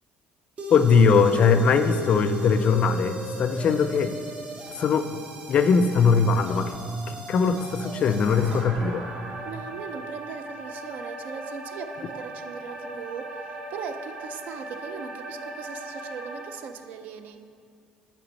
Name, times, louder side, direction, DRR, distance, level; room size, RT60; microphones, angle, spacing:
sound 1, 0.6-16.6, right 1 dB, 45° right, 0.8 m, -37 dB
voice 1, 0.7-4.2 4.8-5.2 5.5-6.8 7.1-9.1, left 5 dB, 45° left, 10 dB, 0.3 m, -21 dB
voice 2, 9.4-17.4, right 6 dB, 70° right, 9 dB, 0.4 m, -39 dB
7.6 x 4.4 x 4.1 m, 2.3 s
cardioid pair, 120°, 3 cm